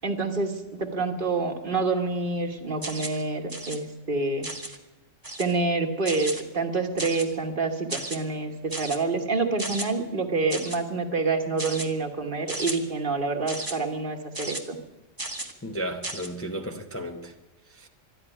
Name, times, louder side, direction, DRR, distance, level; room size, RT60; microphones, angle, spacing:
voice 1, 0.0-4.5 5.4-14.8, right 3 dB, 45° right, 5 dB, 1.4 m, -27 dB
sound 1, 2.8-3.2 3.5-3.8 4.4-4.8 5.2-5.6 6.1-6.4 7.0-7.4 7.9-8.2 8.7-9.0 9.6-9.9 10.5-10.8 11.6-11.9 12.5-12.8 13.5-13.8 14.3-14.6 15.2-15.5 16.0-16.3, right 2 dB, 20° right, 1.1 m, -34 dB
voice 2, 15.6-17.3 17.8-17.9, equal, 15° left, 3 dB, 0.7 m, -33 dB
12.5 x 10.5 x 10.0 m, 1.0 s
omnidirectional pair, 1.3 m